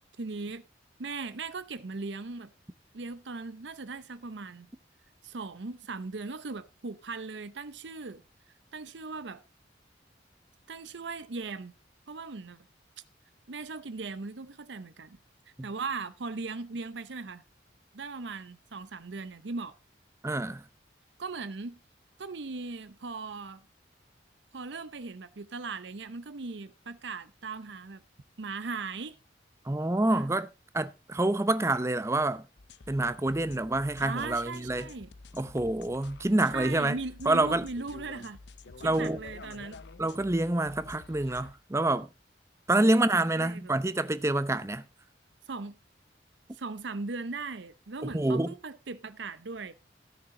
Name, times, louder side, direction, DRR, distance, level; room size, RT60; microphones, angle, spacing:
voice 1, 0.2-0.6 1.0-2.5 2.9-4.7 5.2-8.2 8.7-9.4 10.7-11.8 12.1-12.7 13.5-15.2 15.6-17.4 17.9-19.8 21.2-21.8 22.2-23.6 24.5-28.0 28.4-29.2 30.1-30.3 34.0-35.1 36.5-38.4 38.8-39.8 43.4-43.7 45.5-45.8 46.5-49.7, right 4 dB, 75° right, 0.7 m, -38 dB
voice 2, 20.2-20.6 29.6-30.5 30.7-32.5 32.9-34.9 35.3-37.0 37.3-37.6 38.8-39.2 40.0-42.1 42.7-44.9 48.0-48.5, right 2 dB, 15° right, 0.6 m, -27 dB
sound 1, 32.6-41.6, left 3 dB, 70° left, 0.6 m, -49 dB
16.0 x 6.6 x 3.8 m
head